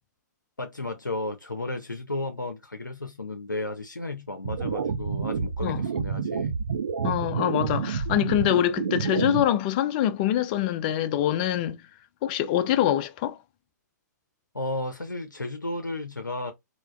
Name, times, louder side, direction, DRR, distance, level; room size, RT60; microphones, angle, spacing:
voice 1, 0.6-6.5 14.5-16.5, left 2 dB, 90° left, 0.5 m, -33 dB
sound 1, 4.4-9.4, right 6 dB, 55° right, 0.5 m, -29 dB
voice 2, 7.0-11.8 12.2-13.4, left 12 dB, 30° left, 0.3 m, -24 dB
3.2 x 2.3 x 2.2 m
figure-of-eight pair, 120°, 10 cm